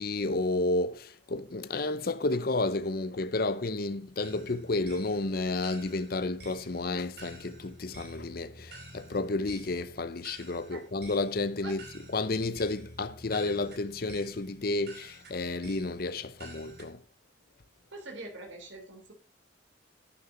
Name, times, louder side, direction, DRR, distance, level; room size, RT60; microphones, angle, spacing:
voice 1, 0.0-17.0, left 2 dB, 50° left, 0.7 m, -31 dB
sound 1, 4.2-16.9, right 2 dB, 55° right, 4.1 m, -50 dB
voice 2, 17.9-19.1, right 2 dB, 80° right, 3.3 m, -43 dB
11.5 x 9.8 x 3.8 m
head